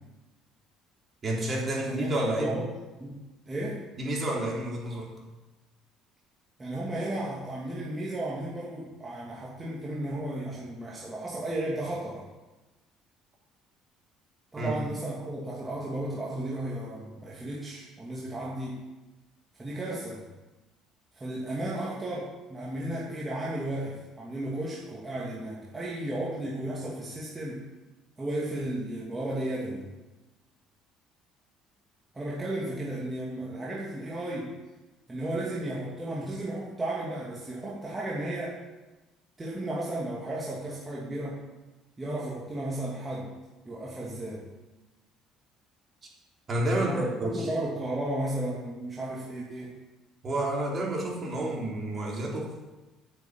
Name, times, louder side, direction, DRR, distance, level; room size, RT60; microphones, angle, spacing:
voice 1, 1.2-2.5 4.0-5.1 14.6-14.8 46.5-47.5 50.2-52.5, right 1 dB, 35° right, -3 dB, 3.8 m, -30 dB
voice 2, 2.4-2.7 3.0-3.8 6.6-12.2 14.5-18.8 19.6-20.2 21.1-27.6 28.2-29.8 32.1-34.5 35.1-38.6 39.4-41.4 42.0-43.3 43.6-44.4 46.7-49.7, right 1 dB, 20° right, -6 dB, 2.6 m, -34 dB
9.3 x 6.9 x 8.5 m, 1.1 s
supercardioid pair, 95°, 0 cm